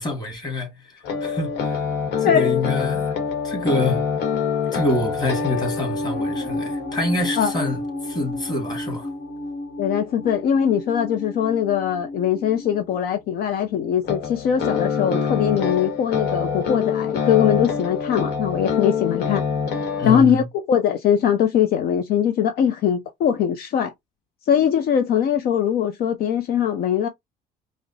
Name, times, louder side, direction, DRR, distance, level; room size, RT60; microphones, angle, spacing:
voice 1, 0.0-1.8 2.2-3.2 3.4-4.1 4.7-9.1 20.0-20.5, left 1 dB, 25° left, 2.1 m, -26 dB
sound 1, 1.0-13.0 14.0-20.2, left 5 dB, 80° left, 1.2 m, -26 dB
voice 2, 9.8-19.4 20.0-23.9 24.5-27.1, left 9 dB, 65° left, 0.5 m, -21 dB
4.9 x 2.1 x 2.7 m
cardioid pair, 110°, 17 cm